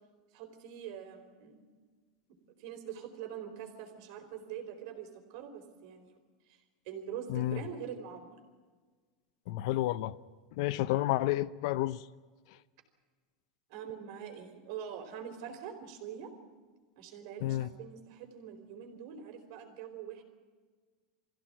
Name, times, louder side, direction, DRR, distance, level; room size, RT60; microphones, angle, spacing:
voice 1, 0.3-1.6 2.6-6.2 6.5-8.4 13.7-16.3 17.0-20.2, right 8 dB, 50° right, 4.3 m, -44 dB
voice 2, 7.3-7.6 9.5-10.1 10.6-12.1 17.4-17.7, left 15 dB, 55° left, 0.7 m, -30 dB
23.0 x 16.0 x 9.1 m
supercardioid pair, 165°, 4 cm